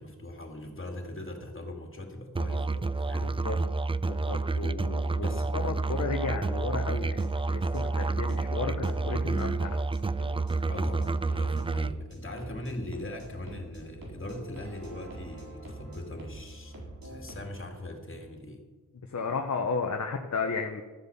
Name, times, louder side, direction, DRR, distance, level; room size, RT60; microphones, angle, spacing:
voice 1, 0.0-3.4 5.2-5.6 10.7-16.8 17.0-18.6, left 1 dB, 35° left, 3 dB, 2.6 m, -40 dB
Musical instrument, 2.4-12.0, right 3 dB, 15° right, 0.3 m, -29 dB
voice 2, 3.2-3.6 4.1-9.8 19.1-20.8, left 4 dB, 50° left, 4 dB, 1.1 m, -33 dB
sound 1, 7.1-17.4, right 1 dB, 75° right, 4.1 m, -45 dB
13.0 x 8.2 x 7.2 m, 1.3 s
wide cardioid pair, 70°, 34 cm